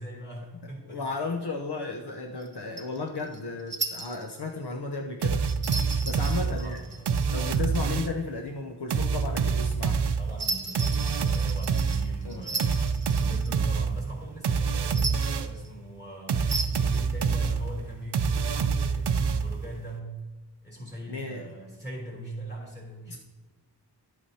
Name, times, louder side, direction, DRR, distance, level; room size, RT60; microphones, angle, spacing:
voice 1, 0.0-1.0 6.0-7.3 10.2-20.2 20.6-23.2, right 1 dB, 25° left, -3 dB, 3.2 m, -41 dB
voice 2, 0.6-5.5 6.0-6.8 7.3-10.0 12.2-12.5 21.1-21.5 23.1-23.2, left 3 dB, 70° left, 1 dB, 0.8 m, -34 dB
small indian jingle bells, 2.4-4.4 5.5-7.8 10.4-13.5 14.8-15.7 16.5-17.0 18.2-18.9, right 3 dB, 25° right, 0.9 m, -36 dB
sound 1, 5.2-8.3 8.9-15.6 16.3-19.8, right 5 dB, 75° right, 0.5 m, -27 dB
11.5 x 8.4 x 2.8 m, 1.2 s
wide cardioid pair, 70°, 41 cm